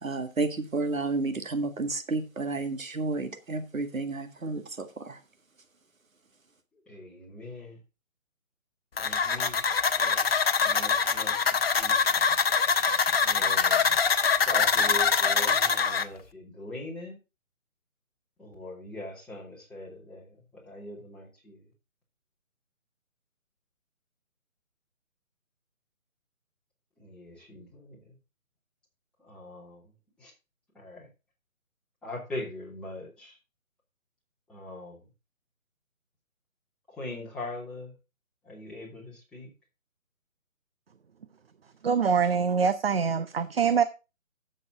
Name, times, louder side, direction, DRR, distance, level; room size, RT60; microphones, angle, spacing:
voice 1, 0.0-5.2, right 3 dB, 75° right, 8 dB, 1.9 m, -31 dB
voice 2, 6.7-7.8 9.0-9.7 9.9-10.3 10.6-12.3 13.2-14.0 14.4-17.2 18.4-21.7 27.0-28.2 29.2-29.9 30.2-30.3 30.7-31.1 32.0-33.4 34.5-35.1 36.9-38.0 38.4-39.5, left 1 dB, ahead, -7 dB, 3.1 m, -41 dB
sound 1, 9.0-16.0, left 5 dB, 45° left, 0.9 m, -24 dB
voice 3, 41.8-43.8, right 6 dB, 45° right, 12 dB, 0.7 m, -24 dB
13.0 x 7.7 x 3.8 m, 0.29 s
figure-of-eight pair, 150°, 41 cm